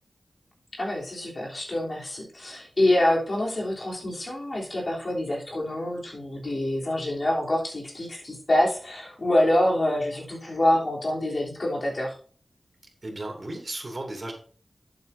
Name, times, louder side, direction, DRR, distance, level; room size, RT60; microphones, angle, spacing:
voice 1, 0.7-12.2, left 1 dB, 50° left, -3 dB, 3.4 m, -26 dB
voice 2, 13.0-14.3, right 2 dB, 45° right, 2 dB, 2.6 m, -35 dB
11.5 x 7.9 x 2.7 m, 0.42 s
wide cardioid pair, 80°, 0 cm